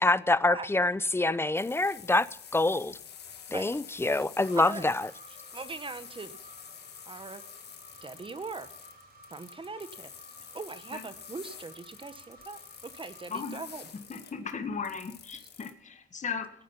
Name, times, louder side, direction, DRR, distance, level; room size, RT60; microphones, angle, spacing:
voice 1, 0.0-2.3 2.5-3.0 3.5-5.1, left 2 dB, 10° left, 0.6 m, -26 dB
sound 1, 1.6-15.7, left 8 dB, 55° left, 1.9 m, -49 dB
sound 2, 4.4-14.4, right 1 dB, 55° right, 5.7 m, -55 dB
voice 2, 4.6-4.9 5.5-6.4 7.1-7.4 8.0-8.7 9.3-10.1 10.4-13.9 15.4-15.5, right 4 dB, 25° right, 1.2 m, -41 dB
voice 3, 14.1-16.5, left 5 dB, 35° left, 1.8 m, -36 dB
17.0 x 9.4 x 5.8 m
cardioid pair, 90°, 20 cm